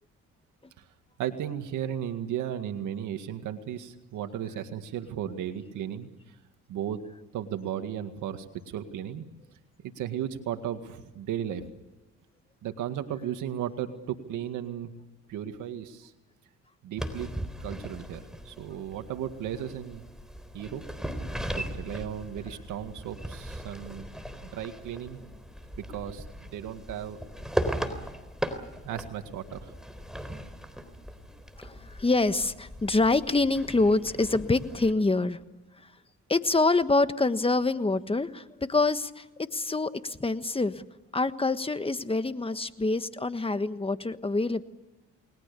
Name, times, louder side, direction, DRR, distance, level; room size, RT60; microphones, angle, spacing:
voice 1, 1.2-6.4 6.7-7.0 7.3-9.3 9.8-11.7 12.6-14.9 15.3-16.1 16.8-17.3 17.6-20.0 20.5-20.8 21.5-24.1 24.4-25.2 25.8-27.2 28.8-29.7, right 10 dB, 85° right, 7 dB, 2.0 m, -35 dB
sound 1, 17.0-34.9, equal, ahead, 3.8 m, -38 dB
voice 2, 31.6-35.4 36.3-40.8 41.1-44.6, left 3 dB, 20° left, 11 dB, 1.4 m, -26 dB
30.0 x 20.5 x 6.9 m, 1.1 s
cardioid pair, 90°, 30 cm